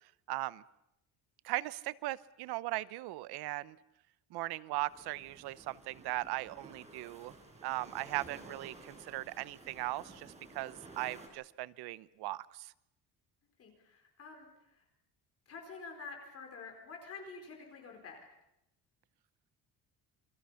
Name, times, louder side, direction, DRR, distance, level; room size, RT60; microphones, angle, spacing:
voice 1, 0.3-0.6 1.4-3.8 4.3-7.3 7.6-12.7, right 17 dB, 85° right, 18 dB, 0.9 m, -38 dB
sound 1, 4.9-11.3, right 2 dB, 15° right, 4.7 m, -54 dB
voice 2, 13.6-14.8 15.5-18.2, left 4 dB, 40° left, 2 dB, 4.4 m, -48 dB
28.0 x 24.0 x 5.7 m, 0.81 s
cardioid pair, 175°, 38 cm